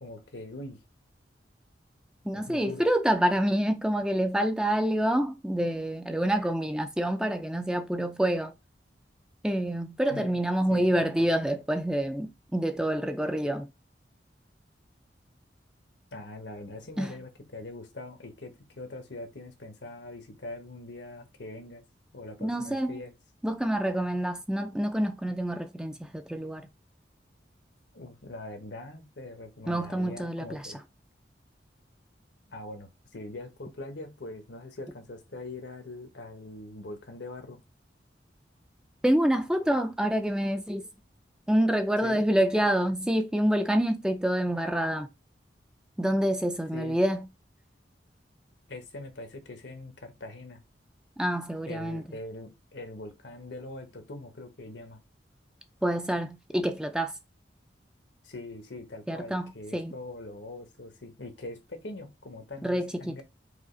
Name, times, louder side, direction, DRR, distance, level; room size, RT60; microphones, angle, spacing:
voice 1, 0.0-0.8 2.3-2.9 10.1-10.4 10.7-11.3 16.1-21.8 22.1-23.1 27.9-30.8 32.5-37.6 42.0-42.2 46.7-47.0 48.7-50.6 51.7-55.0 58.2-63.2, left 2 dB, 80° left, 1.2 m, -42 dB
voice 2, 2.2-8.5 9.4-13.7 17.0-17.1 22.4-23.0 23.4-26.7 29.7-30.7 39.0-40.9 41.5-45.1 46.0-47.3 51.2-52.0 55.8-57.1 59.1-59.9 62.6-63.2, right 1 dB, 5° right, 0.4 m, -27 dB
5.0 x 2.4 x 3.8 m
head